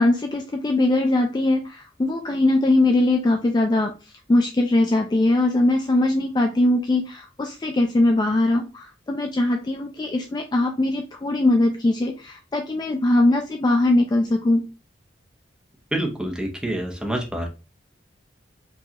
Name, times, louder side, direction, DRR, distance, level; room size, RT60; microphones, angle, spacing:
voice 1, 0.0-3.9 4.3-14.7, left 2 dB, 25° left, 3 dB, 0.3 m, -21 dB
voice 2, 15.9-17.5, right 1 dB, 5° right, 1 dB, 0.8 m, -27 dB
4.7 x 2.3 x 2.9 m, 0.30 s
head